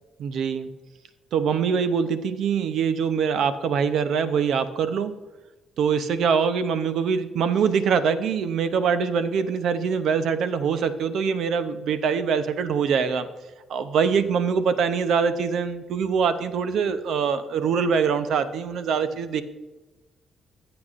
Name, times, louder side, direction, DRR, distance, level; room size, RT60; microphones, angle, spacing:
voice 1, 0.2-0.7 1.3-5.1 5.8-13.3 13.7-19.4, right 6 dB, 70° right, 11 dB, 0.7 m, -23 dB
15.0 x 7.9 x 2.5 m, 1.1 s
cardioid pair, 90°, 0 cm